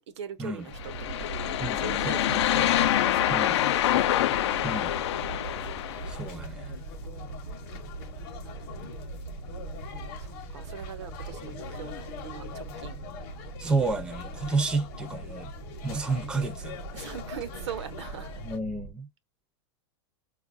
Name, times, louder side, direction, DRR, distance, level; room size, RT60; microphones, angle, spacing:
voice 1, 0.1-0.9 1.2-4.0 4.4-4.6 6.2-6.6 7.0-7.7 8.4-9.1 10.2-13.0 16.9-18.3, right 9 dB, 85° right, 0.8 m, -43 dB
sound 1, 0.7-18.9, right 5 dB, 60° right, 0.5 m, -41 dB
sound 2, 0.8-6.2, left 13 dB, 80° left, 0.4 m, -26 dB
voice 2, 1.6-2.7 3.3-3.6 4.6-4.9 6.1-6.7 13.6-15.5 15.8-16.8 18.4-19.1, right 3 dB, 5° right, 0.4 m, -31 dB
sound 3, 3.8-18.6, left 7 dB, 40° left, 0.7 m, -43 dB
4.5 x 2.2 x 2.4 m
supercardioid pair, 160°, 14 cm